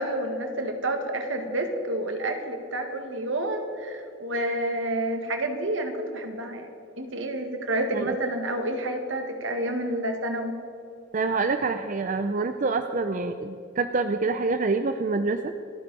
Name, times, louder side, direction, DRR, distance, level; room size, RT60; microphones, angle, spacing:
voice 1, 0.0-6.7 7.0-10.5, right 1 dB, 75° right, 5 dB, 1.8 m, -29 dB
voice 2, 11.1-15.5, right 3 dB, 40° right, 8 dB, 0.5 m, -26 dB
28.0 x 9.9 x 4.2 m, 2.6 s
head